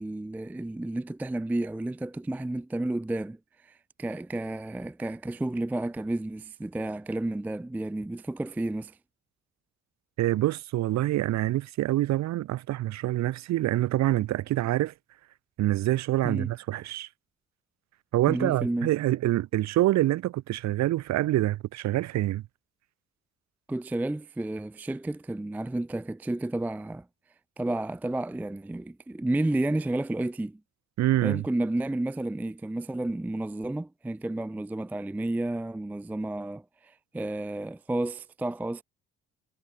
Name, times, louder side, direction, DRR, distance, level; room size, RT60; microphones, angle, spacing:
voice 1, 0.0-9.0 16.2-16.5 18.3-18.9 23.7-27.1 27.6-30.6 31.2-38.8, right 2 dB, 5° right, 0.4 m, -31 dB
voice 2, 10.2-14.9 15.6-17.1 18.1-22.4 31.0-31.4, right 15 dB, 65° right, 0.6 m, -26 dB
cardioid pair, 90°, 30 cm